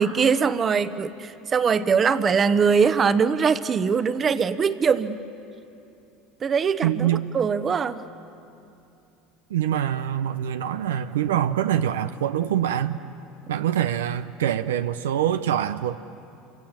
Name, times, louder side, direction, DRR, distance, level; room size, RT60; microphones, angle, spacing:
voice 1, 0.0-5.2 6.4-7.1 7.3-8.0, right 6 dB, 35° right, 12 dB, 1.0 m, -22 dB
voice 2, 6.8-7.3 9.5-13.0 13.5-16.0, right 10 dB, 90° right, 10 dB, 0.6 m, -24 dB
28.5 x 25.0 x 7.3 m, 2.7 s
hypercardioid pair, 90°, 0 cm